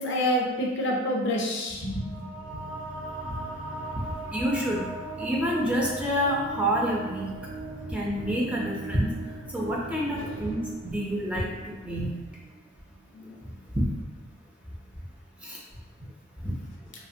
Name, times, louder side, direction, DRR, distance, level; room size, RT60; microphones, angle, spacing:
voice 1, 0.0-2.0 10.1-10.5 13.1-13.3, left 1 dB, 65° left, -1 dB, 0.5 m, -28 dB
sound 1, 1.9-12.8, right 2 dB, 80° right, 0.5 m, -39 dB
voice 2, 4.3-4.8 5.2-7.3 7.9-9.1 9.5-10.6 10.8-11.5 11.9-12.2 13.8-13.9 15.4-15.6 16.4-16.6, equal, 5° right, -4 dB, 0.4 m, -27 dB
2.8 x 2.1 x 2.6 m, 1.3 s
head